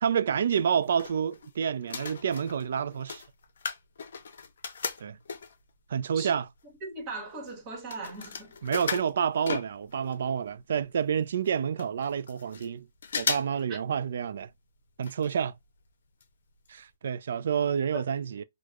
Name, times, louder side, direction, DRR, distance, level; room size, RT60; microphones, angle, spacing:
voice 1, 0.0-3.2 5.0-5.2 5.9-6.5 8.6-12.9 13.2-14.5 15.0-15.5 16.7-18.4, right 7 dB, 60° right, 0.4 m, -29 dB
sound 1, 0.6-1.5 1.8-5.7 6.3-6.4 6.6-10.2 10.5-10.6 10.8-10.9 11.4-11.5 11.8-12.7 13.0-13.6 13.9-14.0 15.0-15.3 15.6-15.7 16.2-16.3 16.7-16.8, left 5 dB, 65° left, 0.7 m, -36 dB
voice 2, 6.8-8.5 13.7-13.8 17.9-18.3, right 3 dB, 25° right, 1.4 m, -39 dB
4.7 x 2.3 x 2.3 m
hypercardioid pair, 145°, 0 cm